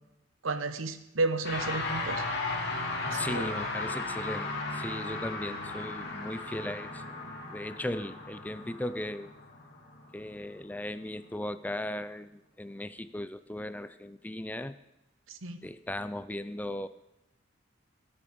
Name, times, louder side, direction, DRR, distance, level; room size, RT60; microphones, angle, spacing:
voice 1, 0.4-2.2 3.0-3.5 15.3-15.6, right 3 dB, 90° right, 9 dB, 1.1 m, -32 dB
sound 1, 1.4-10.9, left 3 dB, 55° left, 2.7 m, -36 dB
voice 2, 3.1-7.0 7.5-9.3 10.1-14.8 15.6-16.9, left 1 dB, 10° left, 13 dB, 0.4 m, -37 dB
18.0 x 8.7 x 5.3 m, 0.91 s
head